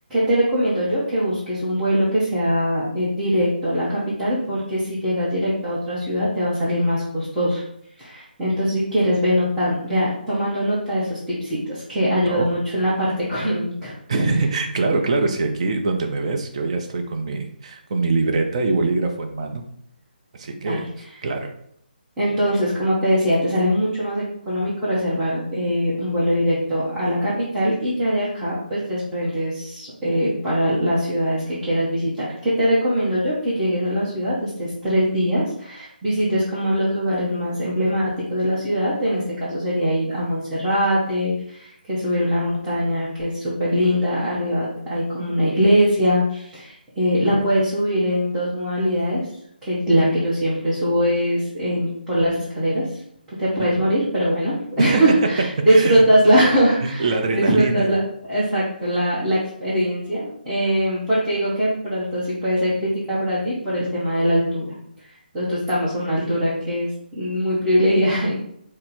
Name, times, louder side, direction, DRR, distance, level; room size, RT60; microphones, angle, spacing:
voice 1, 0.1-7.6 8.0-13.9 20.6-20.8 22.2-49.3 49.6-52.9 53.4-58.0 58.3-64.7 65.3-68.4, equal, 10° right, -13 dB, 1.2 m, -22 dB
voice 2, 14.1-19.6 20.3-20.8 21.2-21.5 53.6-53.9 54.8-55.0 55.7-56.0 56.8-57.9, right 3 dB, 40° right, 4 dB, 0.6 m, -23 dB
4.1 x 2.1 x 4.0 m, 0.70 s
figure-of-eight pair, 145°, 5 cm